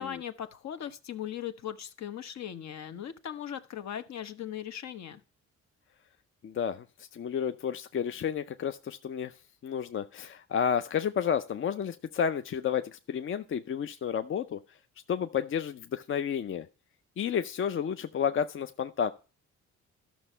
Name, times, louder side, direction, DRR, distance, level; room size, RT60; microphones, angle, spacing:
voice 1, 0.0-5.2, left 10 dB, 65° left, 10 dB, 1.1 m, -39 dB
voice 2, 6.4-9.3 9.6-14.6 15.1-16.7 17.2-19.1, left 8 dB, 45° left, 10 dB, 0.5 m, -31 dB
12.0 x 6.2 x 5.5 m, 0.34 s
cardioid pair, 90°, 30 cm